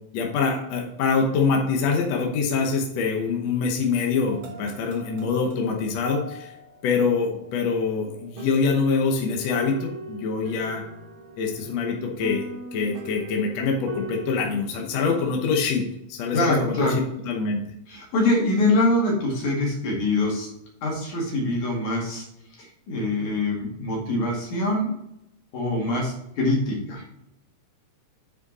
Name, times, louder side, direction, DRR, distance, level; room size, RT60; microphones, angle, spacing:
voice 1, 0.1-6.5 6.8-10.8 11.4-17.6, left 5 dB, 65° left, 1 dB, 2.1 m, -25 dB
sound 1, 4.3-14.4, right 1 dB, 60° right, 1.7 m, -40 dB
voice 2, 16.3-17.0 17.9-20.5 20.8-22.3 22.6-25.0 25.5-27.1, left 2 dB, 85° left, -2 dB, 3.6 m, -24 dB
9.6 x 5.1 x 4.1 m, 0.81 s
omnidirectional pair, 3.4 m